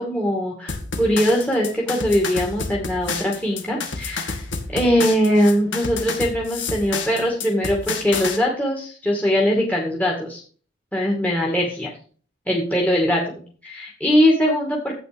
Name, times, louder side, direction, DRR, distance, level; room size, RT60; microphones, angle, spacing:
voice 1, 0.0-4.4 4.7-10.4 10.9-11.9 12.5-13.2 13.6-14.9, equal, 10° left, -3 dB, 2.4 m, -21 dB
sound 1, 0.7-8.4, left 4 dB, 70° left, 2.2 m, -29 dB
12.0 x 8.8 x 5.3 m, 0.43 s
head